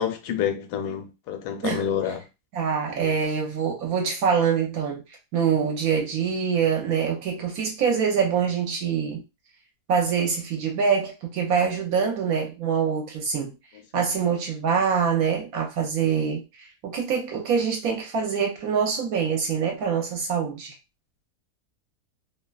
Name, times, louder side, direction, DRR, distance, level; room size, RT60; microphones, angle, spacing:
voice 1, 0.0-2.2 3.0-3.2 13.9-14.0, left 9 dB, 80° left, 1.1 m, -28 dB
voice 2, 2.5-5.0 5.3-9.2 9.9-13.5 13.9-20.7, right 6 dB, 70° right, 1.1 m, -25 dB
2.7 x 2.2 x 2.3 m
omnidirectional pair, 1.7 m